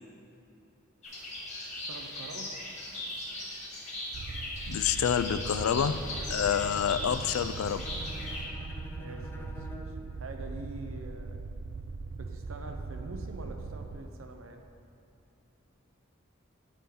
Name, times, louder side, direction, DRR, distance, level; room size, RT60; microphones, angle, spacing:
sound 1, 1.0-8.4, left 1 dB, 35° left, 2.2 m, -39 dB
voice 1, 1.7-2.6 9.0-11.4 12.1-14.6, right 2 dB, 75° right, 5 dB, 0.7 m, -45 dB
sound 2, 4.1-14.0, right 4 dB, 55° right, 0.4 m, -40 dB
voice 2, 4.7-6.0 6.3-7.9, left 8 dB, 85° left, 13 dB, 0.3 m, -28 dB
Bowed string instrument, 5.8-10.0, equal, 10° left, 0.4 m, -46 dB
9.9 x 6.9 x 3.8 m, 2.7 s
head